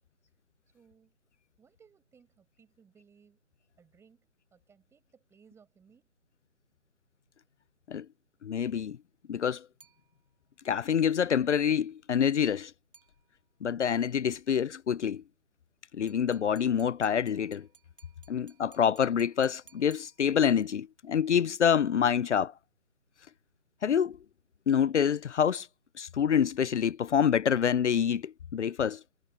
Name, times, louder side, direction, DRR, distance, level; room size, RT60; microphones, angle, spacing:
voice 1, 0.7-1.2 1.6-3.4 3.8-6.1, right 6 dB, 5° right, 7.2 m, -62 dB
voice 2, 8.4-9.0 9.3-9.7 10.6-12.7 13.6-15.2 15.9-17.7 18.3-22.5 23.8-24.2 24.7-25.7 26.0-29.0, left 8 dB, 65° left, 0.6 m, -27 dB
sound 1, 9.8-10.6 12.9-13.7 16.1-20.7, right 5 dB, 45° right, 7.9 m, -61 dB
figure-of-eight pair, 150°, 38 cm